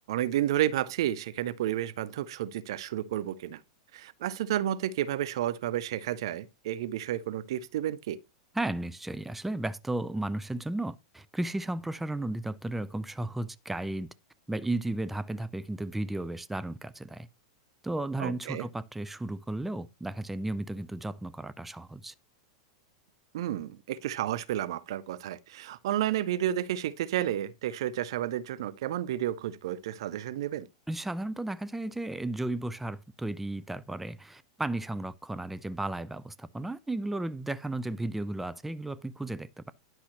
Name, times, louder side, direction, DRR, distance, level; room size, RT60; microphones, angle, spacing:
voice 1, 0.1-3.6 3.9-8.2 18.2-18.7 23.3-30.7, right 12 dB, 65° right, 0.5 m, -31 dB
voice 2, 8.5-14.1 14.5-17.3 17.8-22.1 30.9-39.7, right 2 dB, 5° right, 0.4 m, -34 dB
10.5 x 5.7 x 3.0 m
hypercardioid pair, 95°, 3 cm